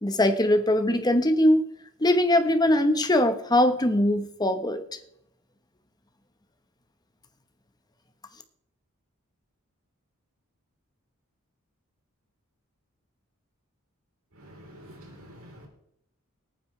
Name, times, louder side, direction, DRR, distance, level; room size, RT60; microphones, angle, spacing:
voice 1, 0.0-1.6 2.0-4.8, left 1 dB, 20° left, 8 dB, 1.0 m, -21 dB
voice 2, 14.4-15.7, equal, 85° right, 1 dB, 3.8 m, -47 dB
19.0 x 9.1 x 3.2 m, 0.73 s
head